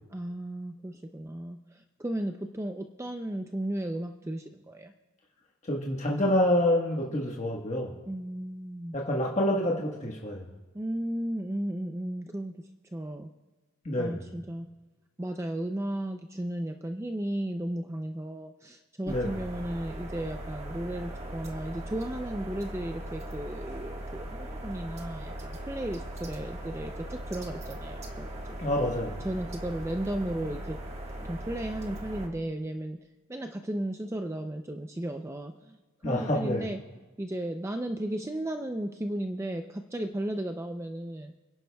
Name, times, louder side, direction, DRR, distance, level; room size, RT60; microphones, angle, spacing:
voice 1, 0.1-4.9 8.1-9.0 10.7-12.6 12.9-13.3 14.0-14.7 15.2-28.4 29.2-30.8 31.2-33.0 33.3-35.8 36.0-36.8 37.2-41.3, right 1 dB, 15° right, 5 dB, 0.4 m, -34 dB
voice 2, 5.7-7.9 8.9-10.5 13.8-14.2 19.0-19.3 28.6-29.2 36.0-36.7, left 1 dB, 35° left, -2 dB, 1.3 m, -27 dB
sound 1, 19.1-32.3, right 1 dB, 30° right, 1.5 m, -39 dB
29.0 x 10.5 x 2.3 m, 1.2 s
head